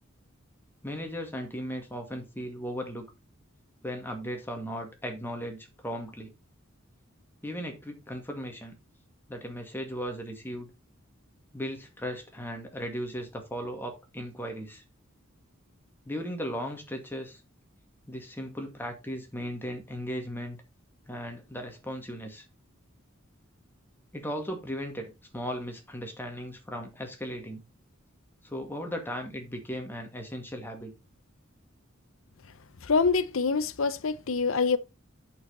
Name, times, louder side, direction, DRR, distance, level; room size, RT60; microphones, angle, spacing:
voice 1, 0.8-3.1 3.8-6.3 7.4-8.7 9.3-10.7 11.5-14.8 16.0-17.4 18.1-20.6 21.1-22.4 24.1-27.6 28.4-30.9, equal, 10° left, 2.0 m, -37 dB
voice 2, 32.8-34.8, left 4 dB, 70° left, 0.7 m, -25 dB
8.4 x 7.0 x 4.0 m
head